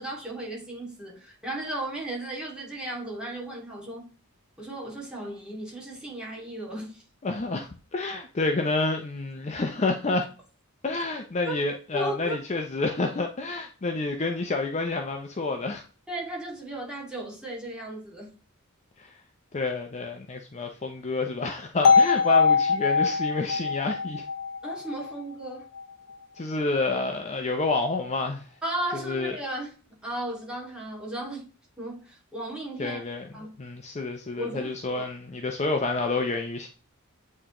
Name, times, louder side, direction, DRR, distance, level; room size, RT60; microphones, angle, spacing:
voice 1, 0.0-4.1 4.6-7.0 11.5-11.6 11.9-12.4 16.1-18.4 24.6-25.7 28.6-29.7 30.0-31.5 31.8-33.0 33.3-33.6 34.4-35.1, right 1 dB, 5° right, 2.1 m, -35 dB
voice 2, 7.2-10.3 10.8-15.8 19.0-19.2 19.5-24.2 26.4-28.5 29.0-29.3 32.8-33.3 33.6-36.7, left 3 dB, 30° left, 0.5 m, -29 dB
sound 1, 21.8-25.8, left 5 dB, 85° left, 0.6 m, -22 dB
8.6 x 3.7 x 2.9 m
head